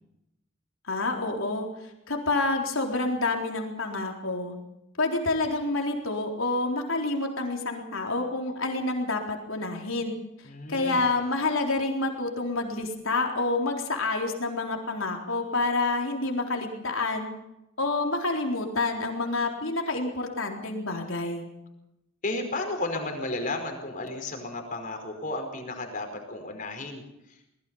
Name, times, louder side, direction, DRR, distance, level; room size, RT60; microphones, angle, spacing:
voice 1, 0.9-1.7 2.1-4.5 5.0-10.1 10.7-17.3 17.8-21.5, left 2 dB, 75° left, 2 dB, 4.0 m, -28 dB
voice 2, 10.4-11.1 22.2-27.5, left 2 dB, 40° left, 3 dB, 5.1 m, -33 dB
23.5 x 20.5 x 5.7 m, 0.86 s
head